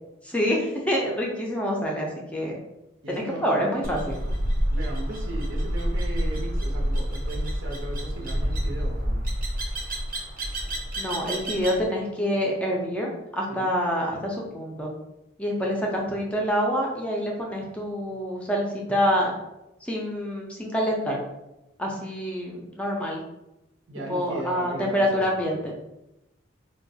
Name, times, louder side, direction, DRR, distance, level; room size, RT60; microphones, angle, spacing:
voice 1, 0.2-2.6 3.1-4.2 11.0-14.9 15.4-19.3 19.8-21.2 21.8-23.2 24.1-25.7, equal, 5° left, -2 dB, 0.4 m, -26 dB
voice 2, 3.0-3.5 4.7-9.2 13.5-13.7 23.9-25.6, right 2 dB, 80° right, -1 dB, 0.7 m, -37 dB
sound 1, 3.8-11.8, equal, 45° right, 0.6 m, -28 dB
3.9 x 2.2 x 2.6 m, 0.92 s
head